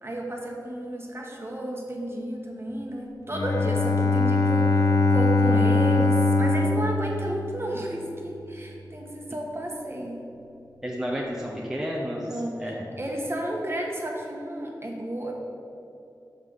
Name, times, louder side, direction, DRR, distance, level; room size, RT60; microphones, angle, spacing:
voice 1, 0.0-10.2 12.3-12.5 13.0-15.3, right 1 dB, 30° right, -1 dB, 1.4 m, -32 dB
Bowed string instrument, 3.3-8.1, left 3 dB, 55° left, 0.7 m, -22 dB
voice 2, 10.8-12.8, equal, 5° right, -3 dB, 0.9 m, -31 dB
5.9 x 5.5 x 6.4 m, 2.8 s
wide cardioid pair, 65°, 8 cm